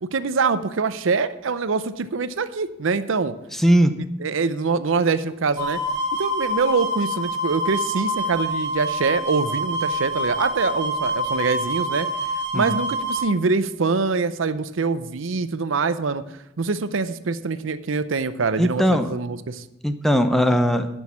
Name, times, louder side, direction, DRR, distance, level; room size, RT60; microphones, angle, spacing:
voice 1, 0.0-3.3 4.2-5.8 6.2-12.1 12.5-16.2 16.6-19.6, right 4 dB, 70° right, 13 dB, 0.6 m, -24 dB
voice 2, 3.6-4.0 12.5-12.8 18.6-19.1 19.8-20.9, equal, ahead, 8 dB, 0.6 m, -19 dB
sound 1, 5.6-13.3, equal, 20° right, 2.5 m, -26 dB
11.0 x 6.3 x 7.1 m, 0.92 s
head